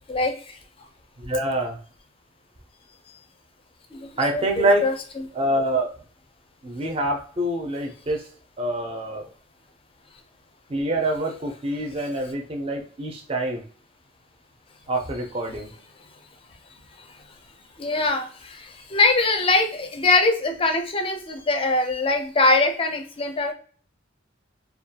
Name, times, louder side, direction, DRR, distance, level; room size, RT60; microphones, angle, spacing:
voice 1, 0.1-0.6 3.9-5.3 17.0-17.1 17.8-23.5, left 3 dB, 30° left, 5 dB, 0.4 m, -23 dB
voice 2, 1.2-1.8 4.2-4.8 5.3-5.9 6.6-8.2 8.6-9.3 10.7-13.6 14.9-15.7, right 1 dB, 30° right, 2 dB, 0.4 m, -25 dB
2.3 x 2.2 x 2.7 m, 0.41 s
head